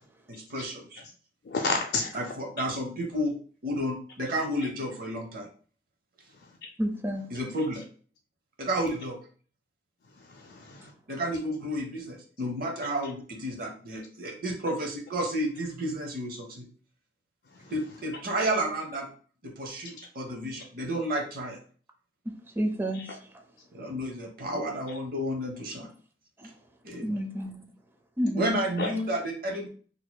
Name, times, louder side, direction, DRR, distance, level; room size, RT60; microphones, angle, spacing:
voice 1, 0.3-1.0 2.1-3.4 3.6-5.5 7.3-7.8 8.6-9.2 11.1-16.7 17.7-19.1 19.4-21.6 23.7-25.9 26.8-27.2 28.4-29.7, right 1 dB, 55° right, 3 dB, 0.7 m, -31 dB
voice 2, 1.4-2.3 6.3-6.7 10.0-10.9 17.5-17.7 20.0-20.1 22.9-23.2 28.8-28.9, left 3 dB, 60° left, -1 dB, 0.4 m, -33 dB
voice 3, 6.8-7.3 22.3-23.0 26.4-26.5 27.0-27.6 28.2-28.6, equal, 15° right, 3 dB, 0.5 m, -30 dB
4.1 x 2.7 x 2.2 m, 0.42 s
head